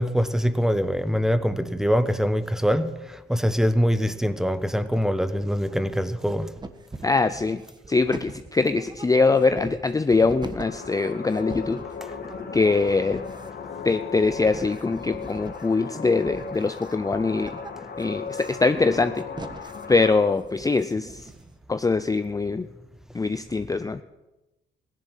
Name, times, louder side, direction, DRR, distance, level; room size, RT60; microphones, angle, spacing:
voice 1, 0.0-6.5, equal, ahead, 1.1 m, -24 dB
sound 1, 4.5-5.1 5.4-6.2 6.5-21.7, right 3 dB, 20° right, 1.4 m, -42 dB
voice 2, 7.0-7.6 7.9-11.8 12.5-13.2 13.8-17.6 18.0-19.2 19.9-21.3 21.7-22.7 23.1-24.0, left 3 dB, 15° left, 0.6 m, -23 dB
sound 2, 10.6-20.3, left 5 dB, 50° left, 1.9 m, -37 dB
16.5 x 11.0 x 7.6 m
cardioid pair, 90°, 20 cm